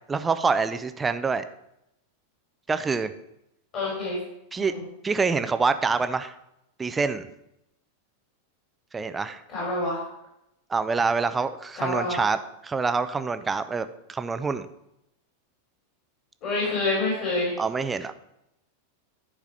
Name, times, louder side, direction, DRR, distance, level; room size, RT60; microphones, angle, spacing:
voice 1, 0.1-1.4 2.7-3.1 4.5-4.7 5.0-6.3 6.8-7.3 8.9-9.4 10.7-12.4 12.6-14.7 17.6-18.1, right 4 dB, 15° right, 11 dB, 0.6 m, -26 dB
voice 2, 3.7-4.2 4.6-4.8 9.5-10.0 11.8-12.2 16.4-17.5, left 2 dB, 40° left, -4 dB, 3.6 m, -27 dB
10.5 x 4.8 x 5.6 m, 0.83 s
figure-of-eight pair, 90°, 0 cm